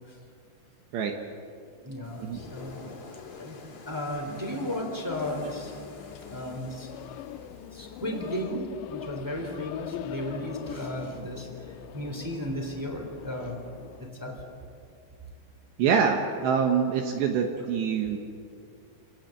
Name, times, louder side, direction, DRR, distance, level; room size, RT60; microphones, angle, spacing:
voice 1, 1.8-2.9 3.4-3.6 3.9-5.7 6.3-6.9 7.4-13.6 14.0-14.4, equal, 5° right, 1 dB, 2.1 m, -35 dB
sound 1, 2.0-8.4, left 4 dB, 45° left, 3.6 m, -48 dB
sound 2, 5.1-14.1, left 11 dB, 80° left, 2.7 m, -41 dB
voice 2, 15.8-18.2, right 6 dB, 70° right, 3 dB, 3.1 m, -25 dB
28.0 x 18.0 x 7.9 m, 2.4 s
omnidirectional pair, 5.8 m